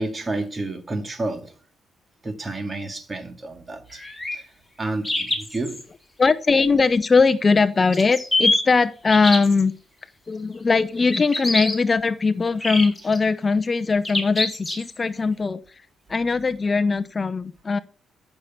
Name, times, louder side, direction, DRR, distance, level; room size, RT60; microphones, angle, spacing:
voice 1, 0.0-1.5 2.2-4.0 4.3-4.5 4.8-5.8, right 2 dB, 25° right, 2.5 m, -30 dB
sound 1, 3.9-4.4 5.0-5.8 7.9-8.6 9.1-9.6 11.1-11.8 12.6-13.2 14.0-15.0, left 2 dB, 5° left, 4.7 m, -24 dB
voice 2, 6.2-9.7 10.3-15.6 16.1-17.8, left 4 dB, 30° left, 0.7 m, -20 dB
14.0 x 6.8 x 5.8 m
cardioid pair, 90°, 0 cm